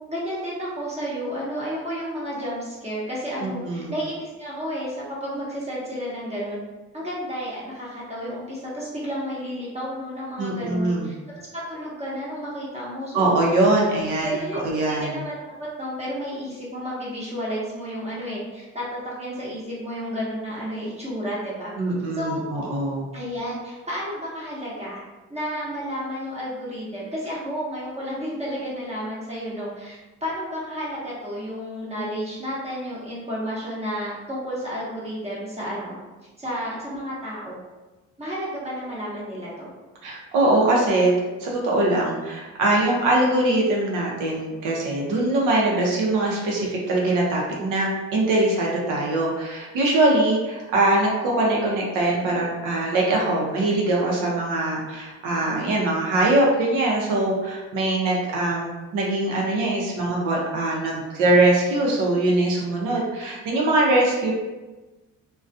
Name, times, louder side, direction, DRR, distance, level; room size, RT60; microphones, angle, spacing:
voice 1, 0.1-6.6 6.9-11.4 11.7-13.4 14.2-21.7 22.1-22.4 23.1-25.0 25.3-35.9 36.4-37.6 38.2-39.7, equal, 20° right, -7 dB, 0.8 m, -31 dB
voice 2, 3.4-3.9 10.4-11.1 13.1-15.2 21.8-23.1 40.0-41.1 41.4-64.3, right 2 dB, 90° right, -2 dB, 0.7 m, -22 dB
2.3 x 2.2 x 2.5 m, 1.2 s
cardioid pair, 90°, 30 cm